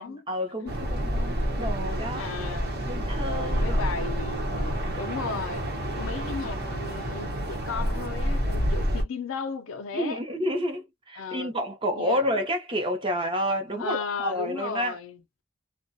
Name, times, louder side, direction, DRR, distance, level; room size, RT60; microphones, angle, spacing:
voice 1, 0.0-2.3 2.8-3.8 9.9-15.0, equal, 25° right, 0.7 m, -30 dB
sound 1, 0.7-9.0, equal, 55° right, 0.9 m, -28 dB
voice 2, 2.2-2.7 3.2-10.2 11.2-11.5 12.0-12.2 13.8-15.2, left 5 dB, 90° left, 0.5 m, -35 dB
2.3 x 2.1 x 2.6 m
head